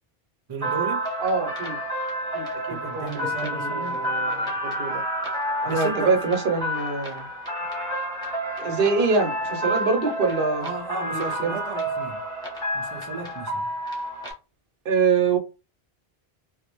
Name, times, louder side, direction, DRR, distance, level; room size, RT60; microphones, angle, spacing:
voice 1, 0.5-1.1 2.7-4.1 5.6-6.2 10.6-12.2 12.7-13.7, right 4 dB, 35° right, 0.4 m, -34 dB
sound 1, 0.6-14.3, right 1 dB, 5° left, 1.0 m, -29 dB
voice 2, 1.2-1.8 2.3-5.0 5.6-7.3 8.6-10.7 11.1-11.6 14.8-15.4, right 4 dB, 65° right, 0.8 m, -25 dB
2.4 x 2.0 x 2.9 m
omnidirectional pair, 1.1 m